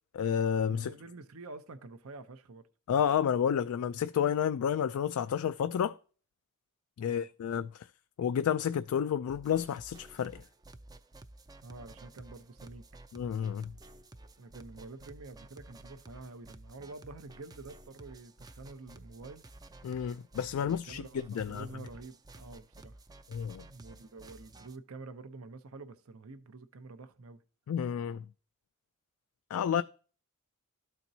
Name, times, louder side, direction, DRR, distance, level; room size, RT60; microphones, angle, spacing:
voice 1, 0.1-0.9 2.9-6.0 7.0-7.9 8.2-10.4 13.1-13.7 19.8-21.0 21.3-21.7 23.3-23.6 27.7-28.2 29.5-29.8, left 8 dB, 70° left, 0.3 m, -30 dB
voice 2, 0.7-2.7 7.0-7.3 11.6-13.0 14.4-19.4 20.5-23.0 23.7-27.4, right 3 dB, 65° right, 0.7 m, -48 dB
sound 1, 9.3-24.8, right 2 dB, 15° right, 0.4 m, -53 dB
13.0 x 4.4 x 2.7 m
head